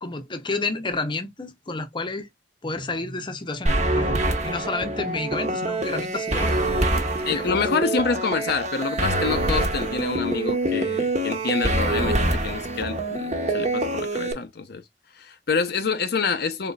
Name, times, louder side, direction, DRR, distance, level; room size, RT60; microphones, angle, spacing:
voice 1, 0.0-2.3 2.6-6.6 7.3-7.5, left 3 dB, 25° left, 0.8 m, -30 dB
sound 1, 3.7-14.3, right 1 dB, 40° right, 1.2 m, -25 dB
voice 2, 7.2-14.8 15.1-16.7, left 4 dB, 60° left, 0.6 m, -27 dB
4.2 x 4.0 x 2.3 m
head